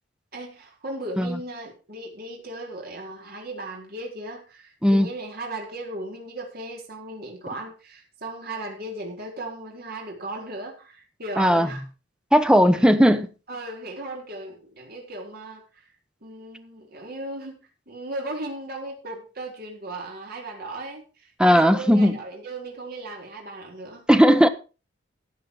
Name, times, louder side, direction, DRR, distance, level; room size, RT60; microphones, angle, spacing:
voice 1, 0.3-11.8 12.8-13.0 13.5-15.8 16.2-17.6 17.9-24.0, right 2 dB, 55° right, 4.4 m, -36 dB
voice 2, 11.4-11.7 12.3-13.3 21.4-22.2 24.1-24.5, equal, 5° right, 1.1 m, -17 dB
14.5 x 8.7 x 4.9 m
head